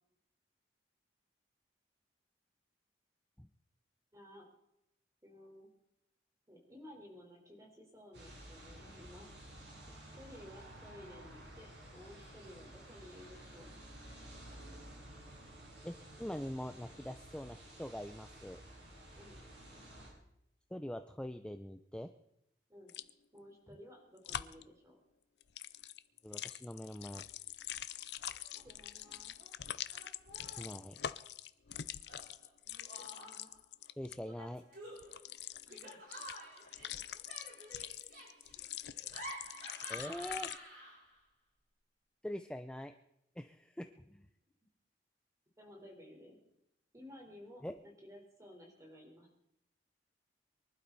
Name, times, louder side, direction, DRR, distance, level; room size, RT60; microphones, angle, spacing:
voice 1, 4.1-4.5 5.2-5.7 6.5-9.3 10.1-13.7 19.1-19.4 22.7-22.9 23.3-25.0 28.6-29.4 33.0-33.5 35.7-35.9 45.6-46.4 46.9-49.3, left 1 dB, 20° right, 0 dB, 4.2 m, -55 dB
sound 1, 8.1-20.1, right 1 dB, 80° right, 6.0 m, -53 dB
voice 2, 15.8-18.6 20.7-22.1 26.2-27.2 30.6-31.0 34.0-34.6 39.9-40.5 42.2-42.9 43.4-44.3 47.6-47.7, equal, 5° left, 8 dB, 0.5 m, -43 dB
sound 2, 22.9-23.1 24.2-24.6 25.4-34.2 35.0-40.6, left 10 dB, 70° left, 0.6 m, -44 dB
Laughter, 28.2-28.6 28.9-29.5 29.9-30.8 32.1-33.6 34.2-41.2, equal, 60° right, 6.0 m, -51 dB
24.0 x 12.0 x 4.1 m, 0.81 s
head